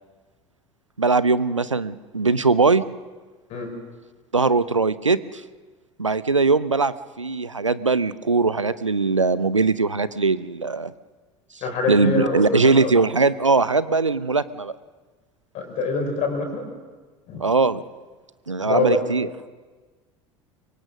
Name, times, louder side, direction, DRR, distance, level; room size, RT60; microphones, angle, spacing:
voice 1, 1.0-2.8 4.3-5.2 6.0-10.9 11.9-14.7 17.4-17.8 18.5-19.3, right 4 dB, 85° right, 17 dB, 0.6 m, -20 dB
voice 2, 11.6-12.9 15.5-16.7 17.3-17.4 18.7-19.0, left 3 dB, 45° left, 3 dB, 5.2 m, -25 dB
24.5 x 23.5 x 6.2 m, 1.4 s
figure-of-eight pair, 70°, 15 cm